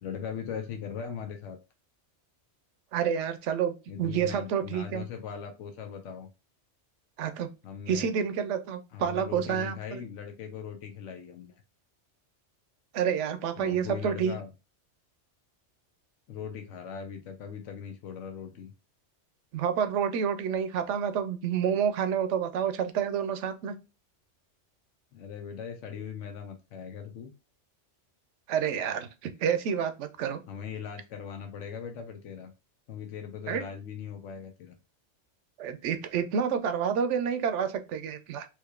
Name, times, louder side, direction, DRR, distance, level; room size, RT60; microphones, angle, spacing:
voice 1, 0.0-1.6 3.9-6.3 7.6-8.1 8.9-11.6 13.6-14.5 16.3-18.7 25.1-27.3 30.5-32.5 32.9-34.7, left 7 dB, 85° left, 4 dB, 1.0 m, -39 dB
voice 2, 2.9-5.0 7.2-7.5 7.9-10.0 12.9-14.4 19.5-23.7 28.5-30.4 33.5-33.6 35.6-38.5, right 8 dB, 80° right, 9 dB, 0.9 m, -29 dB
3.6 x 3.0 x 2.3 m, 0.28 s
omnidirectional pair, 1.2 m